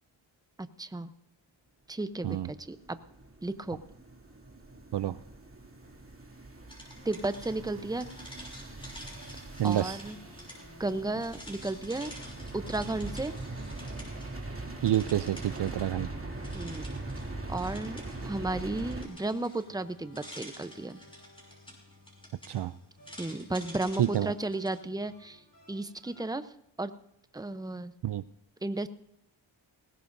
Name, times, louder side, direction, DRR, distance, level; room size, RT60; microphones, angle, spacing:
voice 1, 0.6-1.1 1.9-3.0 3.4-3.8 7.0-8.1 9.6-10.2 10.8-12.1 12.5-13.3 16.5-16.9 17.5-21.0 23.2-25.4 25.7-26.5 26.8-26.9 27.3-27.9 28.6-28.9, right 2 dB, 10° right, 12 dB, 0.7 m, -34 dB
sound 1, 2.5-19.0, right 2 dB, 30° right, 2.5 m, -42 dB
sound 2, 6.7-26.4, left 2 dB, 45° left, 6.9 m, -57 dB
sound 3, 6.7-14.4 14.6-16.0 16.3-24.8, equal, 10° left, 5.9 m, -50 dB
voice 2, 9.6-10.0 14.8-16.1 22.5-22.7 24.0-24.3 28.0-28.2, right 12 dB, 60° right, 15 dB, 0.5 m, -28 dB
20.0 x 17.0 x 2.7 m, 0.77 s
cardioid pair, 55°, 47 cm